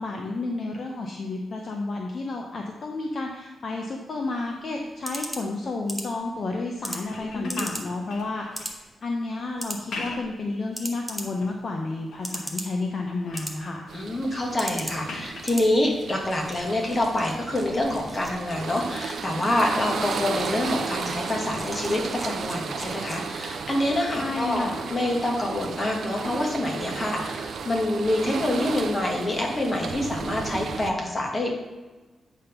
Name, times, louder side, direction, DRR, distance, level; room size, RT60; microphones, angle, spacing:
voice 1, 0.0-13.8 24.1-24.7, left 3 dB, 40° left, 1 dB, 0.7 m, -31 dB
sound 1, 4.2-23.6, equal, ahead, 0.8 m, -40 dB
sound 2, 7.1-8.8 9.7-10.5 10.9-11.6 12.1-12.6 12.9-13.6 15.0-15.6 17.4-17.5, left 3 dB, 80° left, 1.1 m, -40 dB
voice 2, 7.3-7.6 13.9-31.5, left 1 dB, 20° left, 1 dB, 1.3 m, -26 dB
sound 3, 13.9-30.9, right 5 dB, 60° right, 0.6 m, -34 dB
8.3 x 3.5 x 5.8 m, 1.2 s
wide cardioid pair, 165°, 0 cm